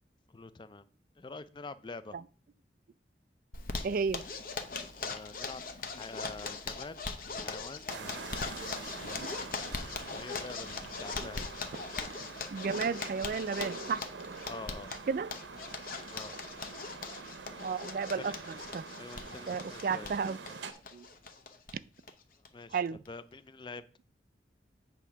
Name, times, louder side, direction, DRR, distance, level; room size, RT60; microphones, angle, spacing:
voice 1, 0.3-0.9 1.2-2.2 5.0-7.0 7.3-8.5 8.9-9.6 9.8-11.6 14.4-14.9 16.1-16.3 18.2-18.3 19.0-20.2 22.5-22.8 23.1-23.8, left 3 dB, 25° left, 0.4 m, -46 dB
Zipper (clothing), 3.5-21.7 22.0-22.1 22.4-22.5 22.9-23.3, left 4 dB, 50° left, 0.8 m, -41 dB
voice 2, 3.8-4.2 9.0-9.4 10.1-10.2 11.2-11.3 11.9-12.1 12.5-14.0 15.1-15.3 17.6-18.8 19.5-20.4 20.9-21.1 22.7-23.0, right 5 dB, 50° right, 0.3 m, -33 dB
sound 1, 7.9-20.7, right 4 dB, 90° right, 0.7 m, -45 dB
8.1 x 3.6 x 5.6 m
head